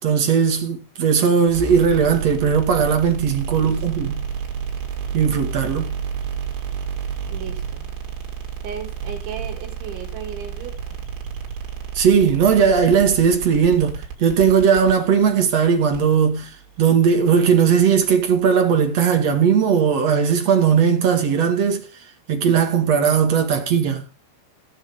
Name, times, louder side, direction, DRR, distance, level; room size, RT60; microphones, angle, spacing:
voice 1, 0.0-4.2 5.1-5.9 11.9-16.5 16.8-21.9 22.3-24.0, right 7 dB, 45° right, 2.5 m, -18 dB
sound 1, 1.5-18.5, right 7 dB, 90° right, 5.8 m, -31 dB
voice 2, 7.3-7.8 8.6-11.0, right 7 dB, 70° right, 6.2 m, -35 dB
20.0 x 7.2 x 3.7 m
omnidirectional pair, 5.6 m